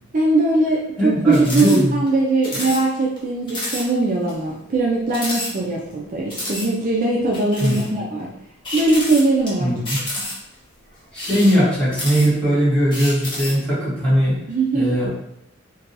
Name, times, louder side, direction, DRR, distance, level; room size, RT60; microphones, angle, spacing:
voice 1, 0.1-8.3 8.7-9.7 14.5-15.0, right 2 dB, 35° right, -3 dB, 0.4 m, -20 dB
voice 2, 1.0-2.0 7.6-8.0 9.6-10.0 11.1-14.4 14.7-15.1, equal, 5° left, -10 dB, 1.2 m, -19 dB
sound 1, 1.3-1.8 2.1-2.2 2.4-2.8 3.2-3.3 3.5-3.8 4.3-4.4 5.1-5.9 6.3-6.7 7.3-7.9 8.6-9.5 9.9-10.6 11.1-12.5 12.9-13.6, left 1 dB, 20° left, 0.8 m, -29 dB
2.7 x 2.2 x 3.8 m, 0.80 s
head